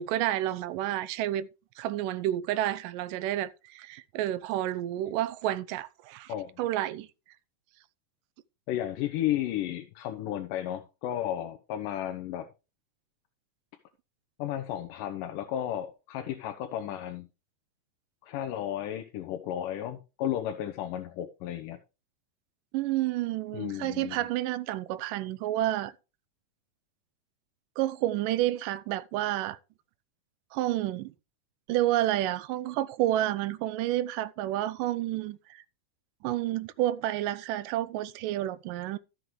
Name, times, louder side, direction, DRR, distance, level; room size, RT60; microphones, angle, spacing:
voice 1, 0.0-1.5 1.8-7.1 22.7-25.9 27.8-29.6 30.5-31.1 31.7-35.6 36.2-39.0, right 14 dB, 85° right, 2.3 m, -30 dB
voice 2, 8.7-12.5 14.4-17.3 18.2-21.8 23.5-24.3, left 11 dB, 80° left, 2.5 m, -33 dB
13.0 x 7.7 x 3.2 m
omnidirectional pair, 3.9 m